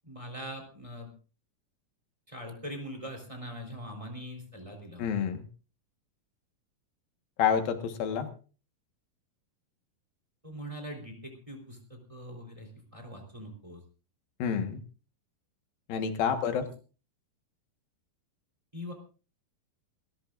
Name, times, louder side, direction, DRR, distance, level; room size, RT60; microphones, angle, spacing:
voice 1, 0.0-1.1 2.3-5.1 10.4-13.8 16.4-16.7 18.7-18.9, equal, 10° right, 3 dB, 3.6 m, -42 dB
voice 2, 5.0-5.4 7.4-8.3 14.4-14.8 15.9-16.7, left 7 dB, 90° left, 7 dB, 3.3 m, -28 dB
27.5 x 14.0 x 2.5 m, 0.36 s
omnidirectional pair, 4.0 m